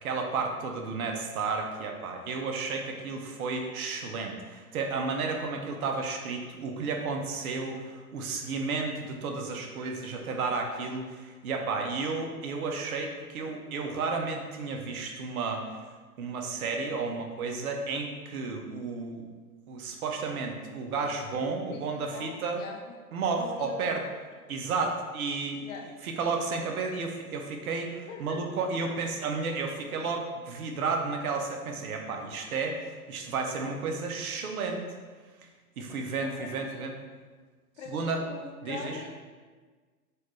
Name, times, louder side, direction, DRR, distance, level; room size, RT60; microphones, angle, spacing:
voice 1, 0.0-15.6 16.2-19.2 19.7-22.6 23.1-24.0 24.5-25.7 26.0-34.8 35.8-36.9 37.9-38.2 38.6-39.0, right 4 dB, 65° right, 2 dB, 0.7 m, -32 dB
voice 2, 22.1-22.8 23.3-24.0 25.6-25.9 28.1-28.4 36.2-36.8 37.8-39.3, left 4 dB, 50° left, 1 dB, 0.7 m, -42 dB
4.3 x 2.4 x 3.1 m, 1.4 s
hypercardioid pair, 115°, 46 cm